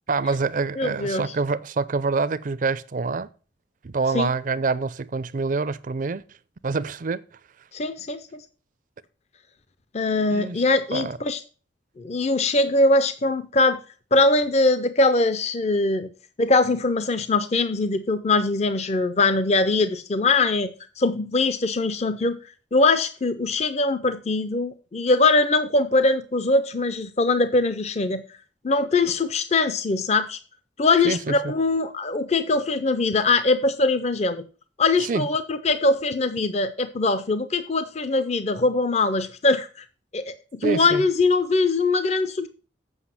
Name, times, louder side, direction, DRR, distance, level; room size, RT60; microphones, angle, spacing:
voice 1, 0.1-3.3 3.8-6.2 6.6-7.2 10.3-10.6 10.9-11.2 31.0-31.5 35.0-35.3 40.6-41.0, right 4 dB, 45° right, 0.4 m, -26 dB
voice 2, 0.8-1.3 4.1-4.3 7.7-8.4 9.9-11.4 12.0-13.8 14.1-16.1 16.4-20.7 21.0-22.4 22.7-28.2 28.6-30.4 30.8-34.4 34.8-39.8 40.1-42.5, left 3 dB, 35° left, 0.5 m, -22 dB
8.0 x 5.8 x 5.8 m
head